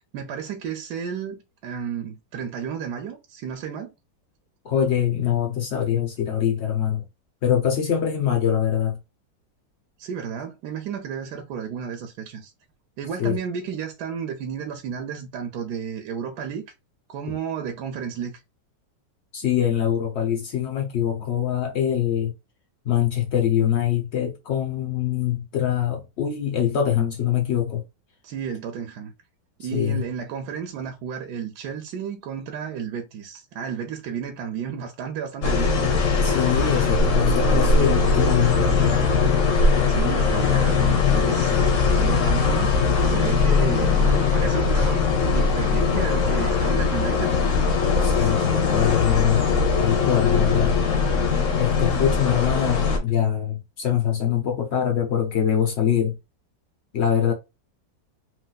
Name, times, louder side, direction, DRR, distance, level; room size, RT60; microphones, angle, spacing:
voice 1, 0.1-3.9 10.0-12.5 13.0-16.6 17.1-18.4 28.2-29.1 29.6-35.8 39.9-42.7 43.0-47.3, right 7 dB, 70° right, 1.0 m, -32 dB
voice 2, 4.6-7.1 7.4-9.0 13.2-13.4 17.3-17.4 19.3-22.3 22.8-27.8 29.6-30.0 36.2-39.0 48.0-49.5 49.8-50.8 51.6-56.2 56.9-57.3, left 9 dB, 80° left, 0.6 m, -23 dB
sound 1, 35.4-53.0, left 4 dB, 55° left, 1.0 m, -20 dB
3.1 x 2.9 x 2.2 m
omnidirectional pair, 2.0 m